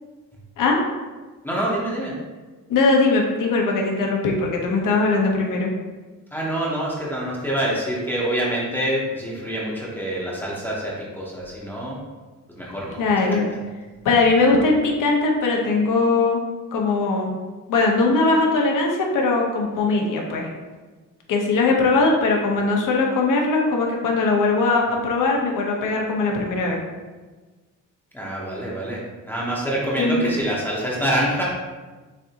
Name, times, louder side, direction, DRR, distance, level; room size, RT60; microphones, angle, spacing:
voice 1, 1.4-2.1 6.3-12.0 12.6-13.2 28.1-31.4, right 1 dB, 5° left, -6 dB, 0.8 m, -26 dB
voice 2, 2.7-5.7 13.0-13.5 14.0-16.4 16.7-17.3 17.7-20.5 21.3-26.8 30.0-30.3, left 3 dB, 65° left, 0 dB, 1.0 m, -20 dB
6.6 x 2.6 x 2.9 m, 1.3 s
cardioid pair, 135°, 33 cm